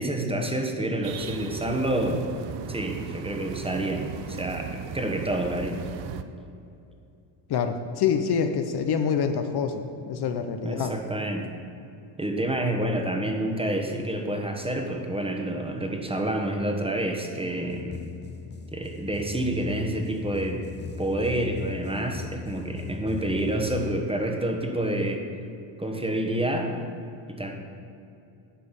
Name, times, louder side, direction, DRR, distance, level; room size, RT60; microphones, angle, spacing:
voice 1, 0.0-2.2 2.7-4.0 4.3-4.7 4.9-5.8 10.6-11.4 12.2-18.0 18.7-20.6 21.0-25.2 25.8-26.7 27.3-27.5, right 1 dB, 10° right, 3 dB, 1.3 m, -28 dB
sound 1, 1.0-6.2, right 8 dB, 65° right, 0.7 m, -37 dB
voice 2, 7.5-10.9, left 6 dB, 55° left, 7 dB, 0.8 m, -26 dB
sound 2, 17.7-24.0, left 5 dB, 25° left, 0.6 m, -39 dB
10.0 x 5.0 x 7.3 m, 2.6 s
cardioid pair, 85°, 48 cm